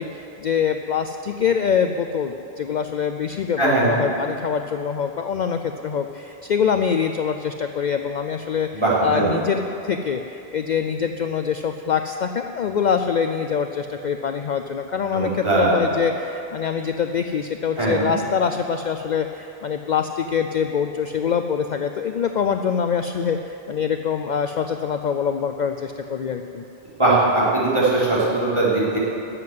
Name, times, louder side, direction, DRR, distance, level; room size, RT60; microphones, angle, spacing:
voice 1, 0.0-8.7 9.0-26.6, left 7 dB, 55° left, 7 dB, 0.6 m, -24 dB
voice 2, 3.6-4.0 8.7-9.3 15.1-15.8 17.8-18.1 27.0-29.0, right 2 dB, 30° right, -7 dB, 3.9 m, -20 dB
13.5 x 7.6 x 9.4 m, 2.8 s
omnidirectional pair, 1.1 m